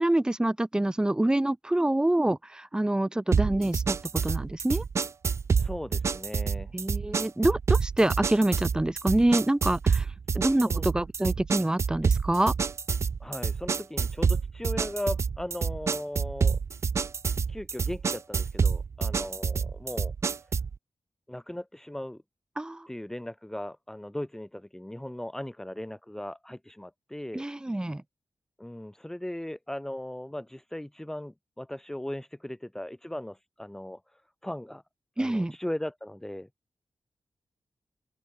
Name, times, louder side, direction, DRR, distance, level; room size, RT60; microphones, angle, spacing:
voice 1, 0.0-4.8 6.7-10.1 10.3-12.5 22.6-22.9 27.3-28.0 35.2-35.6, right 1 dB, 10° right, 2.3 m, -26 dB
sound 1, 3.3-20.8, right 5 dB, 40° right, 0.4 m, -28 dB
voice 2, 5.6-6.8 10.6-10.9 13.2-16.6 17.5-20.1 21.3-22.2 22.9-27.4 28.6-34.8 35.2-36.5, left 1 dB, 5° left, 1.7 m, -38 dB
open air
wide cardioid pair, 175°, 7 cm